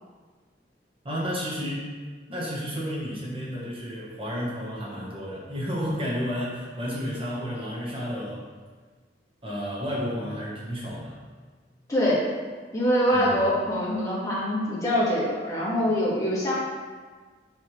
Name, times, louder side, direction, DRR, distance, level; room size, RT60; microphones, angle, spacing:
voice 1, 1.0-1.9 2.3-8.4 9.4-11.2 13.1-13.3, equal, 30° right, -5 dB, 1.2 m, -31 dB
voice 2, 11.9-12.3 12.7-16.5, equal, 20° left, -8 dB, 1.8 m, -24 dB
7.6 x 5.5 x 3.2 m, 1.5 s
head